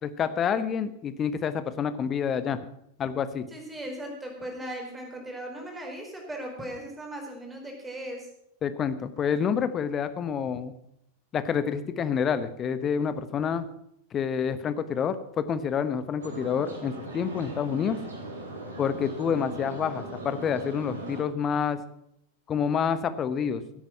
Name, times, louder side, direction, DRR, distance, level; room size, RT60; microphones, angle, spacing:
voice 1, 0.0-2.6 3.0-3.4 8.6-10.7 11.3-13.7 14.1-18.0 18.8-21.8 22.5-23.6, left 7 dB, 25° left, 12 dB, 1.1 m, -28 dB
voice 2, 3.5-8.3, right 1 dB, 10° right, 1 dB, 4.3 m, -38 dB
sound 1, 16.2-21.2, right 1 dB, 70° right, 3.0 m, -39 dB
16.5 x 8.8 x 6.1 m, 0.74 s
figure-of-eight pair, 90°, 0 cm